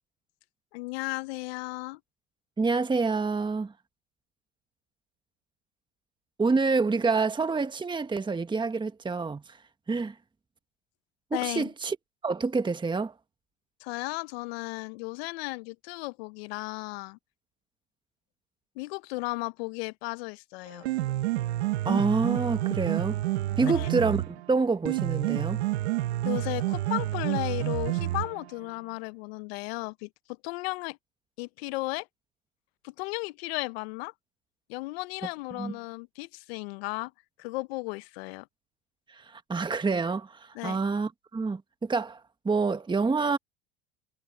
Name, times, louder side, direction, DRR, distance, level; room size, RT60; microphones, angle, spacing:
voice 1, 0.7-2.0 11.3-11.7 13.8-17.2 18.7-20.9 23.7-23.9 26.2-30.1 30.4-31.0 31.4-32.1 32.8-34.1 34.7-37.1 37.4-38.5 40.5-40.8, left 24 dB, 70° left, 1.3 m, -35 dB
voice 2, 2.6-3.7 6.4-9.6 9.9-10.2 11.3-12.0 12.2-13.1 21.8-23.2 23.6-25.6 35.6-35.7 39.1-43.4, right 4 dB, 15° right, 1.5 m, -27 dB
Piano, 20.7-28.7, right 16 dB, 80° right, 1.2 m, -29 dB
hypercardioid pair, 90°, 32 cm